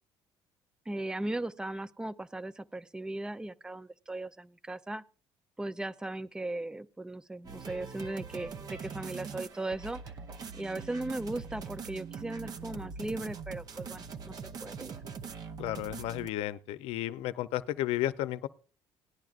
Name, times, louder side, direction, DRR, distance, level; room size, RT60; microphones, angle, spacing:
voice 1, 0.9-5.0 5.6-10.1 10.5-14.3 14.6-15.0, right 2 dB, 10° right, 0.4 m, -37 dB
sound 1, 7.4-16.3, right 6 dB, 40° right, 0.7 m, -42 dB
voice 2, 15.6-18.5, left 14 dB, 85° left, 0.6 m, -33 dB
18.0 x 10.5 x 2.5 m
cardioid pair, 145°, 10 cm